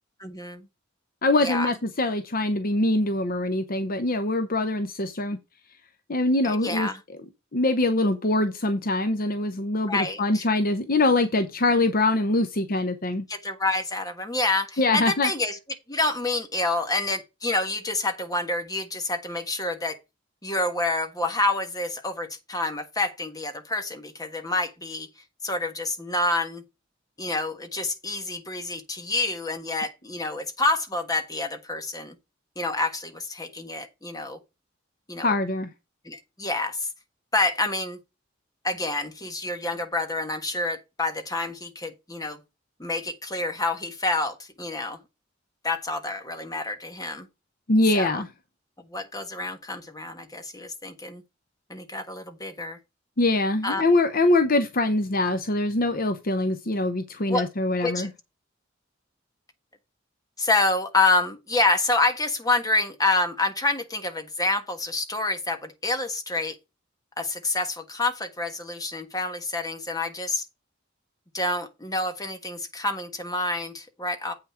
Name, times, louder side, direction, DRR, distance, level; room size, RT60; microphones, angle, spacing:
voice 1, 0.2-0.7 1.4-1.7 6.4-7.0 9.9-10.4 13.3-15.6 15.9-20.0 20.4-25.1 25.4-26.6 27.2-32.1 32.6-34.4 35.1-35.3 36.0-36.9 37.3-38.0 38.6-42.4 42.8-45.0 45.6-47.3 47.9-48.2 48.9-51.2 51.7-52.8 53.6-53.8 57.3-57.5 57.8-58.1 60.4-66.5 67.2-70.4 71.3-74.3, left 2 dB, 20° left, 1.5 m, -28 dB
voice 2, 1.2-5.4 6.1-6.9 7.5-13.3 14.8-15.3 35.2-35.7 47.7-48.3 53.2-58.1, left 2 dB, 45° left, 0.8 m, -23 dB
8.2 x 5.8 x 4.4 m
head